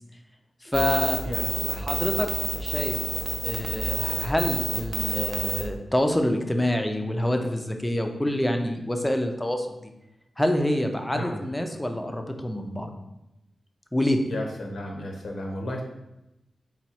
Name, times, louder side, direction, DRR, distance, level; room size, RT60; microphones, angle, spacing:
voice 1, 0.6-1.3 1.8-3.0 3.4-9.9 10.4-12.9 13.9-14.3, left 1 dB, 10° left, 5 dB, 0.4 m, -27 dB
sound 1, 0.7-5.6, right 2 dB, 80° right, 0.5 m, -28 dB
voice 2, 1.2-1.9 11.1-11.4 14.3-15.8, left 1 dB, 70° left, 1 dB, 0.7 m, -33 dB
4.2 x 2.3 x 4.2 m, 0.92 s
wide cardioid pair, 125°, 0 cm